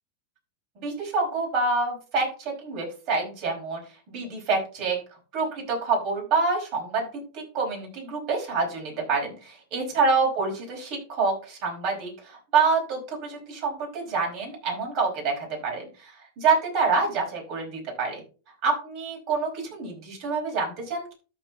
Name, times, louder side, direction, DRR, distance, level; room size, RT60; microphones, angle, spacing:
voice 1, 0.7-3.8 4.1-5.0 5.3-18.2 18.6-21.1, right 4 dB, 40° right, 0 dB, 4.9 m, -27 dB
13.5 x 4.5 x 3.6 m, 0.35 s
supercardioid pair, 150°, 0 cm